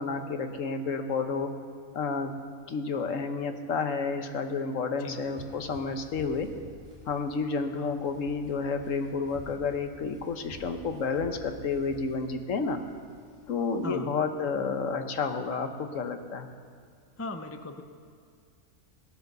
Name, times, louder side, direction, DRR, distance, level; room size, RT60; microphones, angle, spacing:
voice 1, 0.0-1.5 1.9-2.3 2.7-6.5 7.1-12.8 13.5-16.5, left 4 dB, 65° left, 7 dB, 1.3 m, -30 dB
sound 1, 5.1-13.8, equal, 20° right, 3.5 m, -51 dB
voice 2, 17.2-17.8, left 2 dB, 25° left, 7 dB, 0.3 m, -38 dB
16.5 x 10.5 x 6.7 m, 2.2 s
omnidirectional pair, 1.5 m